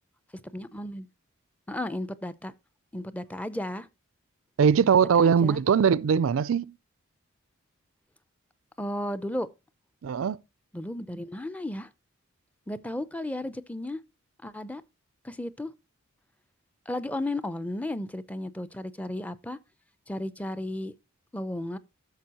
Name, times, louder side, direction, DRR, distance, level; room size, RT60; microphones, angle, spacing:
voice 1, 0.5-1.1 1.7-2.5 2.9-3.9 5.2-5.6 8.8-9.5 10.7-11.9 12.7-14.0 14.4-14.8 15.2-15.7 16.9-19.6 20.1-20.9 21.3-21.8, left 1 dB, 5° left, 0.5 m, -34 dB
voice 2, 4.6-6.7 10.0-10.4, right 7 dB, 70° right, 0.4 m, -21 dB
12.5 x 6.8 x 2.9 m
head